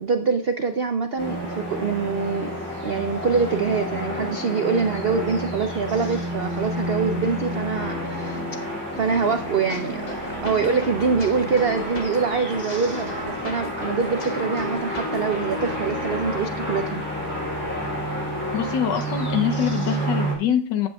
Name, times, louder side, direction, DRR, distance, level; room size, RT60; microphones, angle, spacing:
voice 1, 0.0-2.6 2.8-8.4 8.9-10.1 10.4-17.0, right 5 dB, 85° right, 7 dB, 0.5 m, -24 dB
sound 1, 1.2-20.3, equal, 5° left, 4.7 m, -29 dB
sound 2, 9.7-15.7, left 2 dB, 30° left, 1.1 m, -40 dB
voice 2, 18.5-20.9, left 8 dB, 85° left, 7 dB, 1.5 m, -24 dB
14.5 x 8.4 x 2.3 m, 0.41 s
omnidirectional pair, 1.9 m